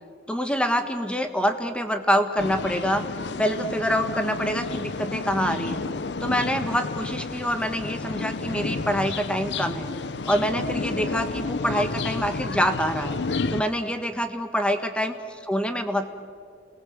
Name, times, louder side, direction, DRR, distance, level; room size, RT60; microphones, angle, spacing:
voice 1, 0.3-3.0 3.4-5.8 6.2-9.9 10.2-13.2 13.5-16.1, equal, 5° left, 7 dB, 1.5 m, -26 dB
sound 1, 2.4-13.6, left 3 dB, 80° left, 0.7 m, -31 dB
29.5 x 20.0 x 7.4 m, 2.2 s
head